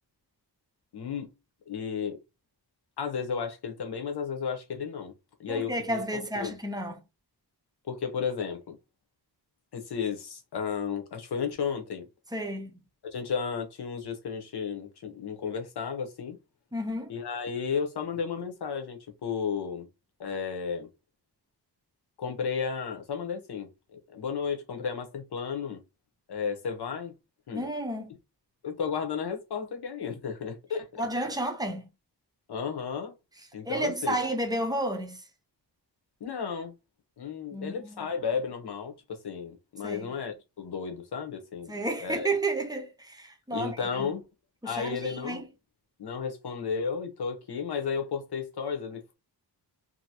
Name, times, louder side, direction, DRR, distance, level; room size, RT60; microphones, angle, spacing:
voice 1, 0.9-1.3 1.7-2.2 3.0-5.1 5.4-6.0 6.3-6.6 7.9-8.7 9.7-12.1 13.0-16.4 17.1-19.9 20.2-20.9 22.2-25.8 26.3-27.1 27.5-27.7 28.6-31.0 32.5-33.1 33.5-34.2 36.2-36.7 37.2-41.7 42.0-42.3 43.5-44.2 44.6-45.4 46.0-49.1, left 6 dB, 70° left, 0.9 m, -33 dB
voice 2, 5.5-7.0 12.3-12.8 16.7-17.1 27.5-28.1 31.0-31.9 33.7-35.2 37.5-38.0 39.8-40.1 41.7-44.1 44.6-45.4, right 1 dB, 10° right, 0.6 m, -32 dB
2.7 x 2.7 x 2.8 m
wide cardioid pair, 155°, 41 cm